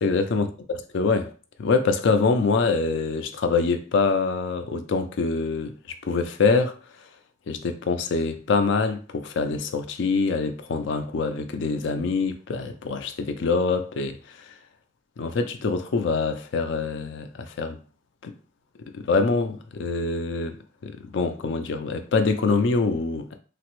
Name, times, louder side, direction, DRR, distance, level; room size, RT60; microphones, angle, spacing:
voice 1, 0.0-0.5 0.9-1.3 1.6-5.7 6.0-6.8 7.5-14.5 15.2-17.8 18.2-18.3 18.9-20.6 20.8-23.4, left 4 dB, 60° left, 0.4 m, -25 dB
3.5 x 2.0 x 2.9 m
head